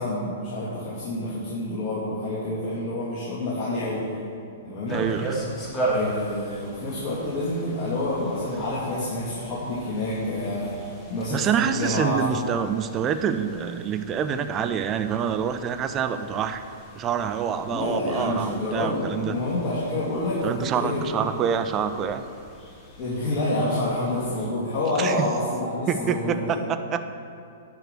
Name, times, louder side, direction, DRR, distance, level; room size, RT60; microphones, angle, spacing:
voice 1, 0.0-4.1 4.6-5.0 5.9-10.8 11.1-12.2 17.7-21.0 23.0-26.6, left 1 dB, 40° left, -8 dB, 2.6 m, -28 dB
sound 1, 4.9-24.5, right 1 dB, 20° left, 2.6 m, -38 dB
voice 2, 4.9-5.4 11.3-16.6 16.9-19.4 20.4-22.2 25.0-25.3 25.9-27.1, right 7 dB, 30° right, 9 dB, 0.6 m, -26 dB
9.6 x 6.0 x 8.1 m, 2.6 s
hypercardioid pair, 115°, 0 cm